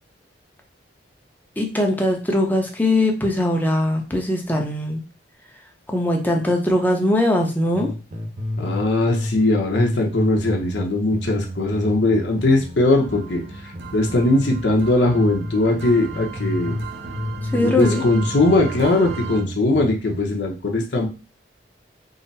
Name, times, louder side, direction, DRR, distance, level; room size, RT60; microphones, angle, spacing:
voice 1, 1.6-5.0 5.9-7.9 17.5-18.0, left 1 dB, 10° left, 2 dB, 0.7 m, -21 dB
sound 1, 7.7-8.9 9.1-14.8 15.1-16.9 17.1-20.2, left 1 dB, 40° right, 0.8 m, -31 dB
voice 2, 8.6-16.8 17.5-21.1, left 2 dB, 70° left, 1 dB, 0.8 m, -20 dB
sound 2, 12.9-19.4, right 4 dB, 70° right, 0.6 m, -36 dB
3.9 x 2.0 x 4.0 m, 0.33 s
head